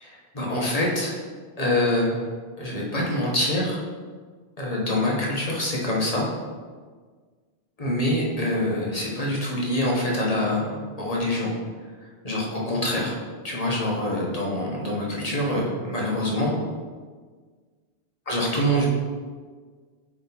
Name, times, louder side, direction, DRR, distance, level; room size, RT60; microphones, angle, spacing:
voice 1, 0.0-1.2 1.6-2.2 2.6-3.8 4.6-6.3 7.8-11.5 12.2-13.2 13.4-16.5 18.3-18.9, left 1 dB, 35° left, -3 dB, 1.4 m, -25 dB
8.7 x 3.6 x 4.1 m, 1.6 s
omnidirectional pair, 1.1 m